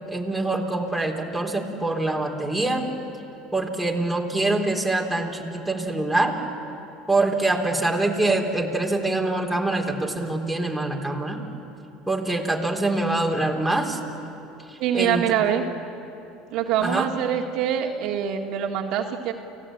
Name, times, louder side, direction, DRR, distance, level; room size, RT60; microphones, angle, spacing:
voice 1, 0.1-2.9 3.5-6.4 7.1-11.4 12.1-14.0 14.9-15.2 16.8-17.1, right 2 dB, ahead, -2 dB, 3.9 m, -24 dB
voice 2, 14.8-15.6 16.5-19.3, right 9 dB, 60° right, 2 dB, 1.9 m, -24 dB
30.0 x 17.0 x 8.9 m, 2.9 s
supercardioid pair, 90°, 0 cm